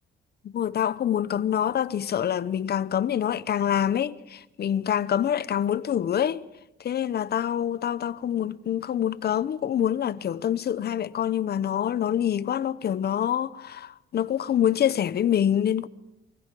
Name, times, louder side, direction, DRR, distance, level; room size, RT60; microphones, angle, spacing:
voice 1, 0.4-6.4 6.8-15.9, left 10 dB, 55° left, 0.8 m, -26 dB
24.0 x 15.5 x 7.6 m
cardioid pair, 90°, 20 cm